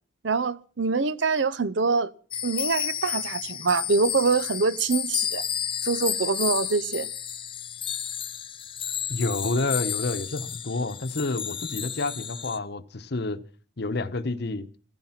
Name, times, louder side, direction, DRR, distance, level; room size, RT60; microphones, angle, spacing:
voice 1, 0.2-2.1 2.4-5.4 5.8-7.1, right 4 dB, 65° right, 0.7 m, -25 dB
sound 1, 2.3-12.6, left 9 dB, 25° left, 0.8 m, -32 dB
voice 2, 9.1-13.4 13.8-14.7, left 3 dB, 55° left, 1.0 m, -29 dB
15.5 x 15.0 x 5.8 m
head